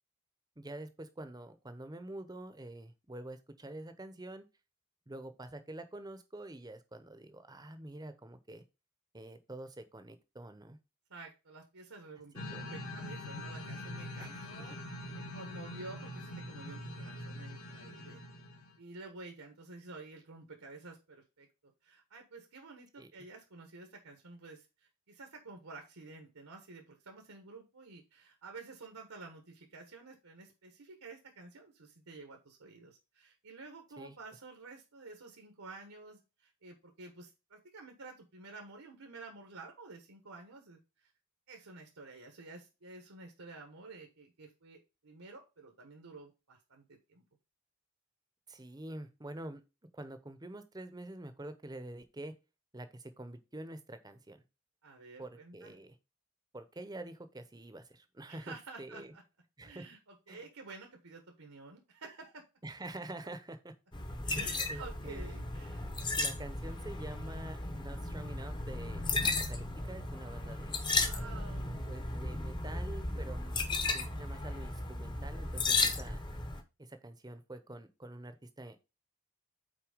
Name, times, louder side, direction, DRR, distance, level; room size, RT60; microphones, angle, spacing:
voice 1, 0.6-4.4 5.1-8.6 9.1-10.8 12.3-12.6 14.2-14.7 23.0-23.2 34.0-34.2 48.5-49.6 49.9-52.3 52.7-54.4 55.2-56.0 56.5-59.1 59.6-59.9 60.3-60.5 62.6-63.7 64.3-65.4 66.2-70.8 71.9-73.7 73.9-76.2 76.8-78.8, right 1 dB, 15° right, 10 dB, 0.7 m, -47 dB
voice 2, 11.1-14.8 15.1-18.2 18.8-41.1 41.5-47.2 54.8-55.7 58.3-59.2 59.6-62.4 64.2-65.9 70.9-71.8, right 3 dB, 80° right, 4 dB, 1.3 m, -51 dB
sound 1, 12.4-18.7, left 1 dB, 70° left, 1.8 m, -44 dB
sound 2, 63.9-76.6, left 3 dB, 20° left, 0.7 m, -35 dB
6.0 x 4.4 x 5.1 m, 0.28 s
head